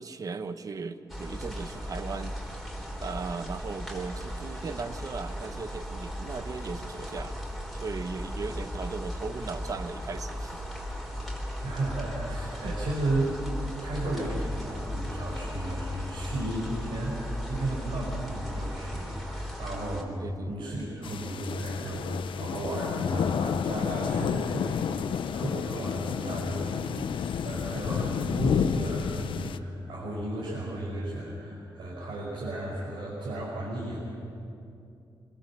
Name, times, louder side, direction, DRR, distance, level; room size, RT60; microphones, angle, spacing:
voice 1, 0.0-2.4 3.0-7.4 7.7-10.6 12.6-12.8 20.2-20.6, right 4 dB, 45° right, 10 dB, 1.0 m, -37 dB
sound 1, 1.1-20.0, equal, ahead, 3.8 m, -36 dB
voice 2, 11.2-13.4 13.8-34.1, right 1 dB, 75° right, -5 dB, 5.7 m, -34 dB
sound 2, 21.0-29.6, left 7 dB, 75° left, 0.7 m, -30 dB
25.5 x 21.0 x 7.3 m, 2.6 s
wide cardioid pair, 145°, 9 cm